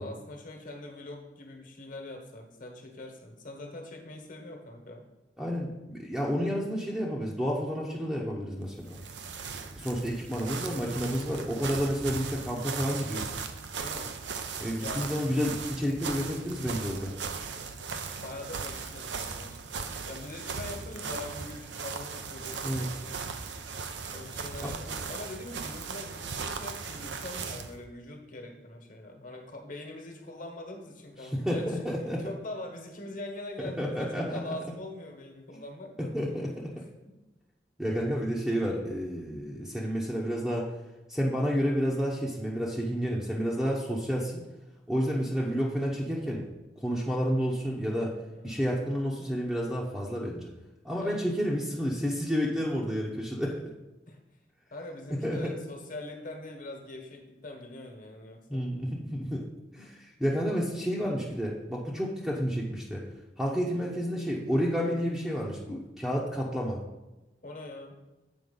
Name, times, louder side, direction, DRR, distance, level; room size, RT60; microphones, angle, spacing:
voice 1, 0.0-5.0 13.7-14.1 14.8-15.1 18.2-23.1 24.1-31.8 32.2-36.1 36.8-37.2 48.3-48.6 51.0-51.3 54.1-54.2 54.7-58.6 67.4-68.0, left 2 dB, 50° left, 2 dB, 1.4 m, -43 dB
voice 2, 5.4-9.0 9.8-13.3 14.6-17.1 22.6-22.9 24.6-24.7 31.2-32.3 33.6-34.5 35.5-35.6 36.1-36.7 37.8-40.7 41.1-44.4 44.9-46.5 46.8-48.1 48.4-50.5 50.8-53.6 55.2-55.5 58.5-59.5 59.7-63.1 63.4-66.8, equal, 5° right, -4 dB, 0.8 m, -30 dB
sound 1, 8.7-27.8, right 5 dB, 75° right, 0.6 m, -38 dB
7.8 x 4.6 x 5.4 m, 1.0 s
head